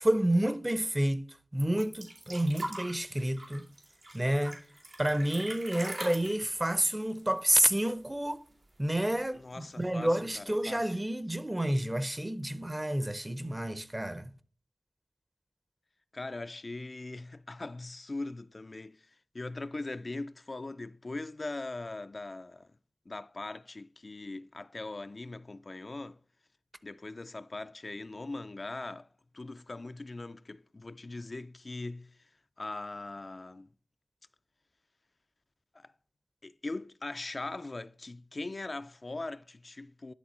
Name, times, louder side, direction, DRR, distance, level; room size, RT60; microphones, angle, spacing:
voice 1, 0.0-1.2 1.5-3.7 4.1-4.6 5.0-8.4 8.8-14.3, right 1 dB, 20° right, 0.6 m, -29 dB
sound 1, 1.6-8.0 8.3-8.4 8.7-9.4 10.2-10.3, right 1 dB, 85° right, 2.4 m, -42 dB
voice 2, 9.3-11.0 16.1-22.7 23.1-26.2 26.8-29.1 29.3-32.3 32.6-33.7 35.7-35.9 36.4-40.1, left 2 dB, 55° left, 0.3 m, -40 dB
11.0 x 3.7 x 4.2 m
cardioid pair, 40°, 0 cm